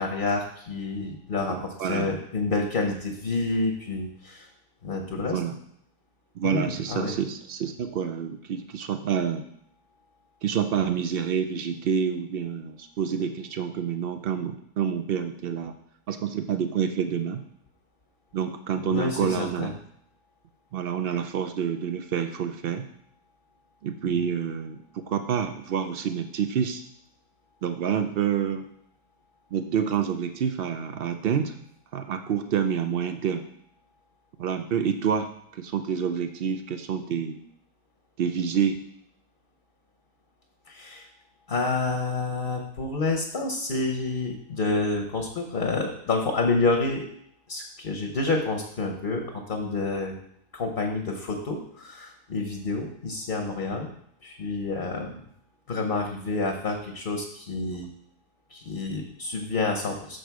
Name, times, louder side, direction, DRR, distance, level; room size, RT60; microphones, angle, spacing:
voice 1, 0.0-4.5 4.8-5.4 6.4-7.1 18.8-19.7 24.1-24.2 40.7-41.1 41.5-47.1 47.5-50.1 50.5-53.9 54.2-55.1 55.7-57.9 58.5-60.2, left 3 dB, 45° left, 3 dB, 0.9 m, -28 dB
voice 2, 1.5-2.1 5.3-5.6 6.4-9.4 10.4-15.7 16.1-17.4 18.3-19.7 20.7-22.9 23.8-26.8 27.6-28.7 29.5-31.5 31.9-33.4 34.4-37.4 38.2-38.8, right 7 dB, 85° right, 8 dB, 0.5 m, -28 dB
6.6 x 6.2 x 4.6 m, 0.70 s
omnidirectional pair, 1.6 m